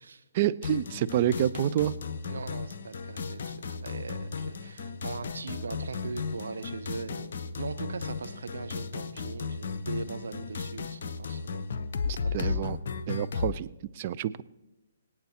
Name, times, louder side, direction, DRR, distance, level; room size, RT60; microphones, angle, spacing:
voice 1, 0.3-1.9 12.1-12.8 13.1-13.7 14.0-14.4, right 11 dB, 35° right, 14 dB, 0.4 m, -28 dB
sound 1, 0.6-13.6, left 5 dB, 50° left, 0.7 m, -35 dB
voice 2, 2.2-11.6 12.2-12.6, right 4 dB, 60° right, 9 dB, 0.9 m, -40 dB
26.0 x 8.8 x 2.9 m, 1.0 s
figure-of-eight pair, 125°, 0 cm